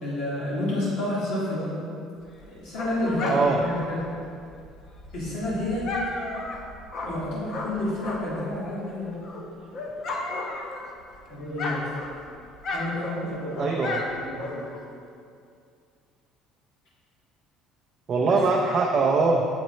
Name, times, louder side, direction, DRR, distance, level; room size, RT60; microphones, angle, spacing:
voice 1, 0.0-1.7 2.5-4.0 5.1-6.0 7.0-9.2 11.3-11.8 12.7-13.7 14.1-14.6, left 1 dB, 55° left, -8 dB, 1.9 m, -30 dB
Dog, 2.2-8.5 8.9-11.2 11.4-14.9, left 2 dB, 35° left, 0.8 m, -34 dB
voice 2, 3.3-3.6 13.6-14.0 18.1-19.5, right 4 dB, 30° right, -1 dB, 0.5 m, -22 dB
7.2 x 6.1 x 4.2 m, 2.4 s
cardioid pair, 175°, 0 cm